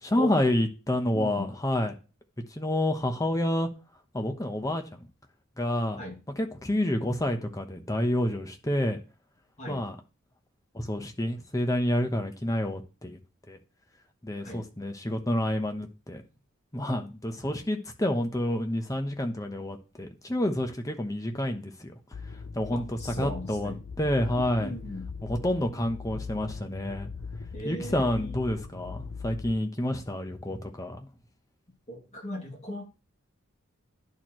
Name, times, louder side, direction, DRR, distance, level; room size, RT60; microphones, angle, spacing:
voice 1, 0.0-1.9 2.5-3.7 4.1-4.8 5.6-6.0 6.4-9.0 9.7-9.9 10.7-13.2 13.5-13.6 14.2-16.2 16.7-21.9 22.5-23.7 24.0-24.7 25.2-27.1 27.6-31.1, left 1 dB, 15° left, 1.0 m, -29 dB
voice 2, 1.1-1.5 6.0-6.2 9.6-9.9 14.4-14.7 22.7-23.8 24.6-25.1 27.5-28.5 31.9-32.9, equal, 30° left, 2.3 m, -38 dB
sound 1, 22.1-29.5, left 4 dB, 55° left, 0.6 m, -40 dB
11.0 x 4.4 x 3.1 m
head